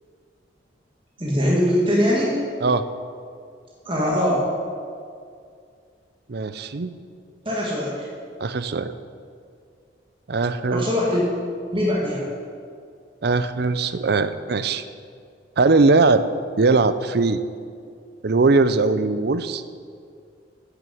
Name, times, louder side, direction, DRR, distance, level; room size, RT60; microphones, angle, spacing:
voice 1, 1.2-2.3 3.9-4.4 7.5-8.1 10.7-11.2 11.7-12.3, equal, 30° right, -5 dB, 2.1 m, -21 dB
voice 2, 6.3-6.9 8.4-8.9 10.3-10.9 13.2-14.8 15.6-16.2 16.6-17.4 18.2-19.6, right 3 dB, 60° right, 12 dB, 0.6 m, -20 dB
11.0 x 8.0 x 7.8 m, 2.3 s
head